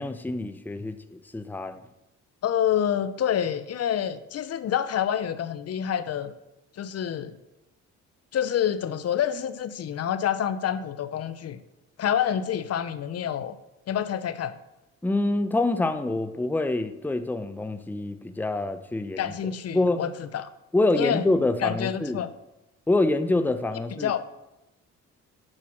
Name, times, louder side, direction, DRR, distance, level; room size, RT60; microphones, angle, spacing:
voice 1, 0.0-1.8 15.0-20.0 20.7-22.2 22.9-24.2, left 2 dB, 5° left, 0.6 m, -26 dB
voice 2, 2.4-6.3 6.7-7.3 8.3-11.6 12.0-13.6 13.9-14.6 19.2-20.5 20.9-21.3 21.6-22.3 24.0-24.2, left 9 dB, 55° left, 0.6 m, -27 dB
8.7 x 6.1 x 6.2 m
cardioid pair, 90°, 30 cm